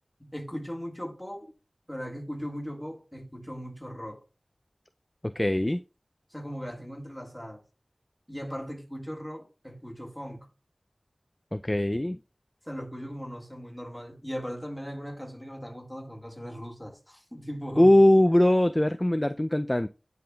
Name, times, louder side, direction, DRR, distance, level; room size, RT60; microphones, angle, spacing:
voice 1, 0.2-1.5 1.9-4.2 6.3-7.6 8.3-10.5 12.6-17.9, equal, 5° left, 1.7 m, -38 dB
voice 2, 5.2-5.8 11.5-12.2 17.8-19.9, left 1 dB, 20° left, 0.3 m, -21 dB
9.6 x 5.2 x 2.3 m
wide cardioid pair, 50°, 0 cm